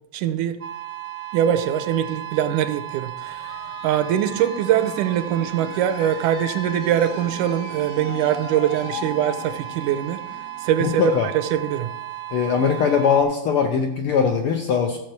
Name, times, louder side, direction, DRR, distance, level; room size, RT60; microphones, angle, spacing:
voice 1, 0.1-0.6 1.3-3.5 3.8-10.2 10.6-11.9, right 10 dB, 85° right, 9 dB, 2.2 m, -22 dB
sound 1, 0.6-13.2, right 14 dB, 70° right, 1.0 m, -35 dB
sound 2, 3.2-12.7, left 7 dB, 60° left, 1.7 m, -39 dB
voice 2, 10.8-11.3 12.3-15.0, left 6 dB, 75° left, 4 dB, 1.2 m, -21 dB
14.0 x 7.5 x 4.6 m, 0.91 s
omnidirectional pair, 3.5 m